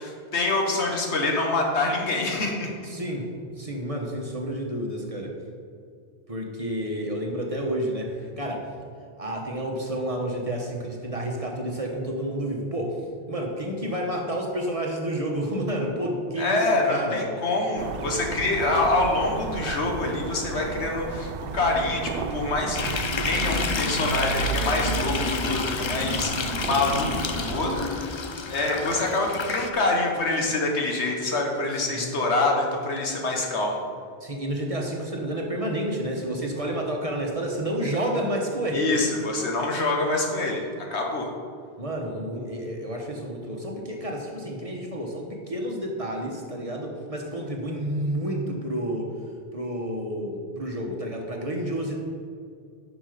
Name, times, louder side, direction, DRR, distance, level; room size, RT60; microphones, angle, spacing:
voice 1, 0.0-2.7 16.4-27.7 28.0-28.1 28.5-33.8 38.7-41.3, left 2 dB, 80° left, 1 dB, 1.6 m, -26 dB
voice 2, 2.8-3.3 3.6-5.3 6.3-8.7 9.2-13.0 13.3-17.2 31.7-32.1 34.2-39.0 41.8-49.1 49.5-52.0, right 1 dB, 30° right, 0 dB, 1.3 m, -30 dB
sound 1, 17.8-27.9, right 5 dB, 65° right, 0.7 m, -33 dB
sound 2, 22.7-29.7, left 5 dB, 50° left, 0.3 m, -30 dB
9.8 x 6.2 x 5.1 m, 2.3 s
omnidirectional pair, 1.1 m